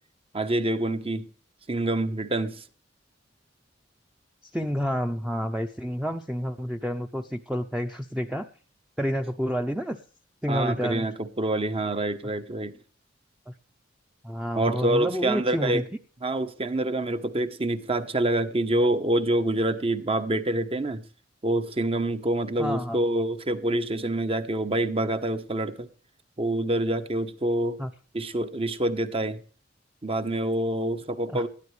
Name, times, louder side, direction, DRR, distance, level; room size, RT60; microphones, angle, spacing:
voice 1, 0.3-1.3 1.7-2.6 10.5-12.8 14.6-15.8 16.2-21.0 21.4-25.9 26.4-27.8 28.1-29.4 30.0-31.5, right 1 dB, 30° right, 1.1 m, -26 dB
voice 2, 4.5-8.5 9.0-10.0 10.4-11.1 13.5-13.6 14.2-15.8 22.6-23.0 27.8-27.9 31.3-31.4, equal, 5° right, 0.7 m, -29 dB
19.5 x 13.0 x 3.3 m
head